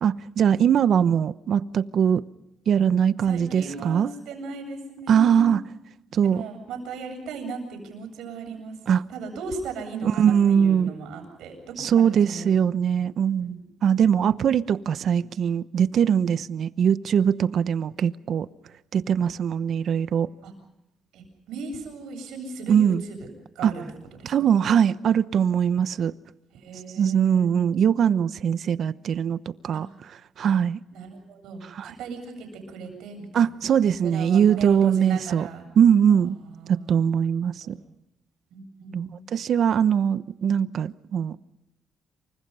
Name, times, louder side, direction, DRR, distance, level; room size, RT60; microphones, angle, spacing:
voice 1, 0.0-2.2 2.7-4.1 5.1-5.6 6.1-6.4 8.9-9.0 10.0-10.9 11.8-18.5 18.9-20.3 22.7-23.0 23.6-23.7 24.2-26.1 27.0-29.9 30.4-30.8 31.8-31.9 33.3-35.5 35.8-36.4 36.7-37.7 38.9-41.4, right 8 dB, 60° right, 0.9 m, -21 dB
voice 2, 3.2-5.6 6.2-8.8 9.1-12.6 12.9-13.0 13.4-13.6 20.4-20.5 21.1-23.3 23.5-23.8 24.2-24.3 26.5-27.6 29.7-29.8 30.9-33.6 34.0-35.6 36.1-37.3 37.6-37.8 38.5-39.4, right 3 dB, 85° right, 8.0 m, -37 dB
28.0 x 24.5 x 5.6 m
cardioid pair, 90°, 0 cm